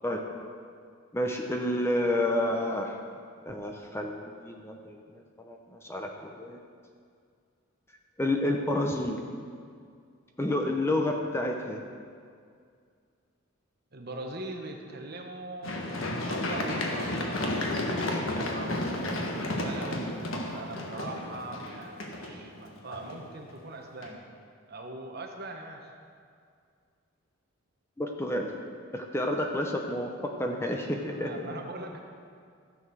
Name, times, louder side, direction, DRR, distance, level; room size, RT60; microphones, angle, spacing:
voice 1, 0.0-0.5 1.1-3.0 3.4-6.6 8.2-9.2 10.4-11.8 28.0-28.5 28.9-31.3, left 1 dB, 10° left, 2 dB, 0.7 m, -30 dB
voice 2, 13.9-15.8 16.2-24.2 24.7-25.9 31.1-32.0, right 2 dB, 50° right, 2 dB, 1.2 m, -41 dB
Run, 15.6-23.5 24.0-24.1, left 1 dB, 70° left, 1.4 m, -32 dB
14.5 x 7.0 x 6.3 m, 2.2 s
head